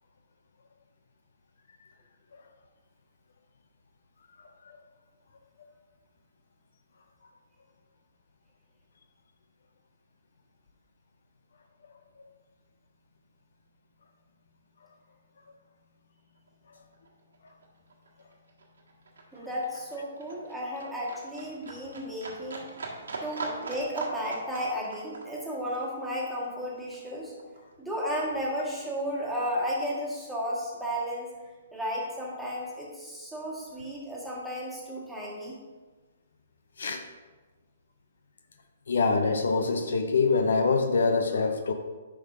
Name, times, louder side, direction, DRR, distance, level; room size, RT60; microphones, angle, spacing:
Livestock farm animals working animals, 16.4-16.5 16.7-27.7 28.1-29.1 29.4-29.5, right 3 dB, 80° right, 1.4 m, -41 dB
voice 1, 19.3-22.7 23.2-27.3 27.8-31.3 31.7-35.5, equal, ahead, -6 dB, 1.9 m, -33 dB
voice 2, 38.9-41.7, left 4 dB, 75° left, 6 dB, 0.6 m, -25 dB
10.5 x 5.4 x 2.8 m, 1.3 s
hypercardioid pair, 135°, 0 cm